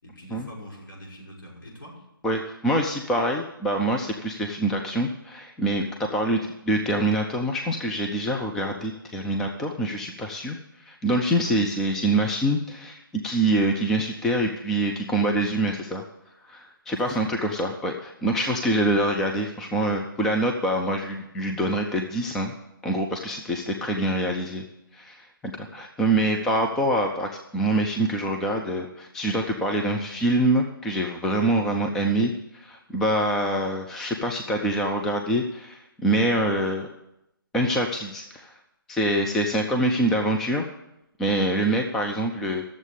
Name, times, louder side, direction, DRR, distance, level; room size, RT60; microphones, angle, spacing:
voice 1, 0.0-2.0 17.0-17.5, equal, 65° left, -2 dB, 6.1 m, -44 dB
voice 2, 2.2-6.4 6.6-16.0 16.4-22.5 22.8-24.6 24.9-36.9 37.5-38.5 38.9-40.6 41.2-42.7, right 1 dB, 5° left, 2 dB, 0.4 m, -25 dB
12.5 x 7.4 x 8.2 m, 0.85 s
figure-of-eight pair, 155°, 12 cm